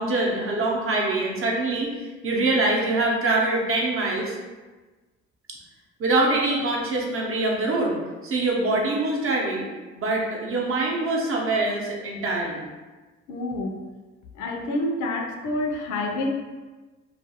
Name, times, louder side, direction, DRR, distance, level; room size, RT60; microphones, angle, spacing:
voice 1, 0.0-1.9 2.2-4.4 6.0-7.9 8.2-9.7 9.9-12.7, right 2 dB, 45° right, -2 dB, 0.7 m, -24 dB
voice 2, 13.3-13.8 14.4-16.3, left 1 dB, 80° left, 2 dB, 0.5 m, -28 dB
2.4 x 2.3 x 2.7 m, 1.2 s
cardioid pair, 90°, 30 cm